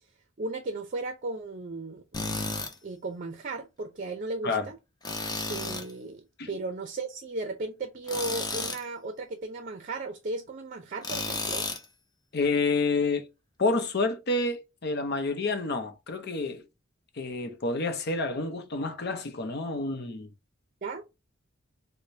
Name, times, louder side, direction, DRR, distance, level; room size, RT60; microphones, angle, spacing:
voice 1, 0.4-2.3 2.8-4.8 5.5-11.7 20.8-21.0, right 3 dB, 40° right, 0.5 m, -35 dB
Tools, 2.1-2.7 5.0-5.9 8.1-8.8 11.0-11.9, left 3 dB, 20° left, 0.7 m, -32 dB
voice 2, 12.3-13.3 13.6-16.6 17.2-20.3, left 3 dB, 55° left, 0.7 m, -29 dB
4.9 x 2.1 x 2.6 m
head